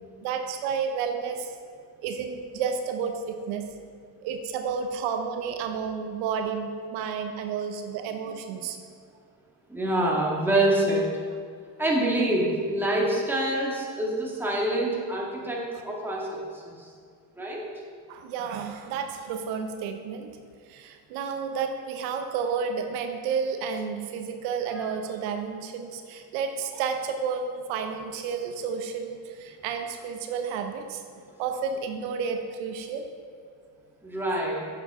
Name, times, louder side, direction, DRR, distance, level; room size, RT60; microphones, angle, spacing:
voice 1, 0.2-1.5 2.0-3.6 4.2-8.8 18.1-20.3 20.7-31.0 31.4-33.1, right 6 dB, 85° right, 5 dB, 0.9 m, -31 dB
voice 2, 9.7-11.1 11.8-16.9 17.4-17.6 24.8-24.9 34.0-34.6, right 1 dB, 5° right, -4 dB, 2.0 m, -26 dB
9.3 x 7.8 x 3.7 m, 2.1 s
cardioid pair, 110°, 45 cm